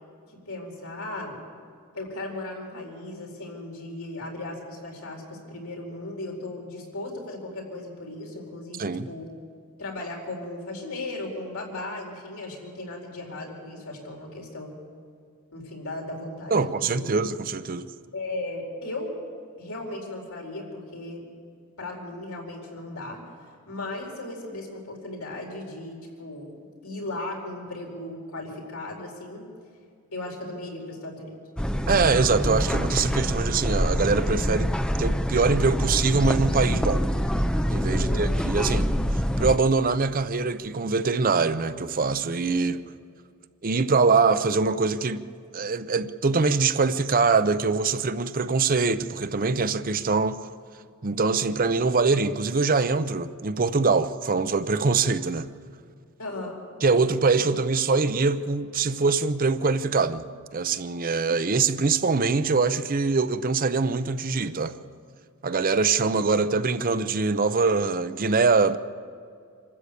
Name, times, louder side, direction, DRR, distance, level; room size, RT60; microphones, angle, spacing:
voice 1, 0.3-1.4 1.9-9.3 9.8-14.7 15.5-17.1 18.1-19.1 19.6-21.3 21.8-23.2 23.7-29.5 30.1-31.3 37.9-38.3 56.2-56.6, left 2 dB, 85° left, 4.5 m, -36 dB
voice 2, 16.5-17.9 31.9-34.7 35.0-37.1 37.7-42.8 43.6-45.2 45.5-50.4 51.0-55.5 56.8-60.3 60.5-64.7 65.4-68.8, right 4 dB, 40° right, 0.6 m, -23 dB
sound 1, 31.6-39.6, equal, 5° left, 0.6 m, -25 dB
26.0 x 13.0 x 8.4 m
head